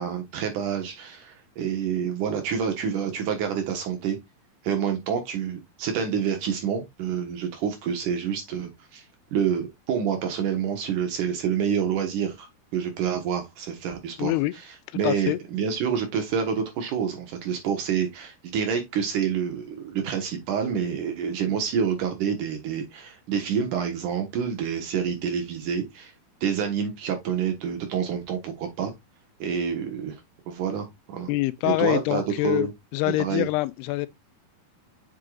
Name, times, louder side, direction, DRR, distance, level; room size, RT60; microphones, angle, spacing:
voice 1, 0.0-4.2 4.6-9.0 9.3-12.5 12.7-14.3 14.9-26.1 26.4-28.9 29.4-30.2 30.5-31.3 31.6-32.7 33.2-33.5, right 7 dB, 65° right, 2.3 m, -28 dB
voice 2, 14.2-14.5 15.0-15.4 31.3-32.7 32.9-34.1, left 19 dB, 85° left, 2.6 m, -25 dB
7.9 x 5.6 x 2.4 m
omnidirectional pair, 4.8 m